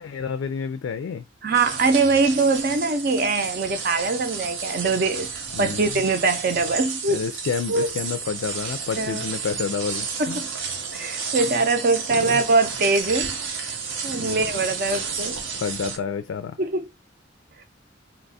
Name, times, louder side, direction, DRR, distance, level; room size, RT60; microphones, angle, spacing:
voice 1, 0.0-1.3 5.5-6.0 7.1-10.4 12.2-12.4 14.2-14.5 15.5-16.6, left 6 dB, 85° left, 0.3 m, -29 dB
voice 2, 1.4-7.2 7.7-7.9 9.0-9.3 10.2-10.5 10.9-13.3 14.0-15.4 16.6-16.9, right 3 dB, 50° right, 0.5 m, -22 dB
sound 1, 1.5-16.0, right 5 dB, 85° right, 0.8 m, -32 dB
2.9 x 2.3 x 4.0 m
head